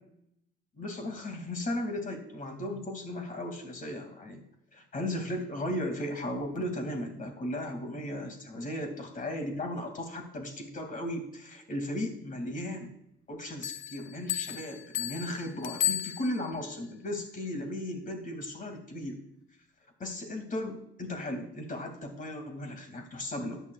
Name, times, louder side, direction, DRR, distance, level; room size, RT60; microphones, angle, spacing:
voice 1, 0.8-4.4 4.7-12.9 13.3-19.2 20.0-23.6, left 1 dB, 45° left, 5 dB, 2.6 m, -36 dB
Bell, 13.6-16.7, left 12 dB, 90° left, 0.7 m, -34 dB
13.5 x 9.1 x 2.5 m, 0.73 s
cardioid pair, 90°, 20 cm